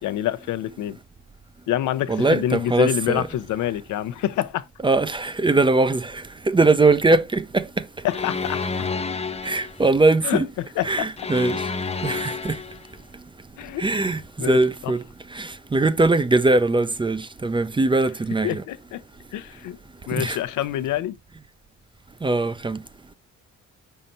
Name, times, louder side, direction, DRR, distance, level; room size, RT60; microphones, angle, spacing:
voice 1, 0.0-1.0 1.7-4.7 8.0-8.9 10.2-11.1 13.6-14.1 14.4-14.6 18.4-19.0 19.3-19.8 20.1-21.2, left 12 dB, 80° left, 0.7 m, -27 dB
voice 2, 2.1-3.3 4.8-7.7 9.4-10.5 10.8-11.7 12.0-12.6 13.8-15.0 15.3-18.6 20.2-20.4 22.2-22.8, right 3 dB, 15° right, 0.5 m, -21 dB
sound 1, 8.1-9.9 11.2-12.9, left 4 dB, 20° left, 0.7 m, -29 dB
5.7 x 4.3 x 3.9 m
cardioid pair, 90°, 30 cm